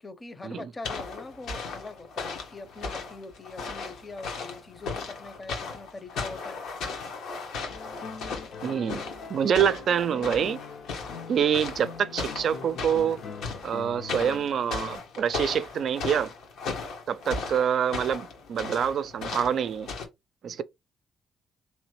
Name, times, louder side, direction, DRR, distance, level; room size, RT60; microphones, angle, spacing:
voice 1, 0.0-6.6 20.5-20.6, left 3 dB, 25° left, 0.7 m, -42 dB
sound 1, 0.8-20.1, left 4 dB, 85° left, 1.3 m, -37 dB
sound 2, 7.7-15.0, left 5 dB, 65° left, 0.9 m, -42 dB
voice 2, 8.6-9.0 9.3-10.6 11.3-13.2 13.6-16.3 17.1-19.9 20.4-20.6, right 8 dB, 60° right, 0.3 m, -26 dB
3.8 x 3.1 x 3.1 m
cardioid pair, 90°, 0 cm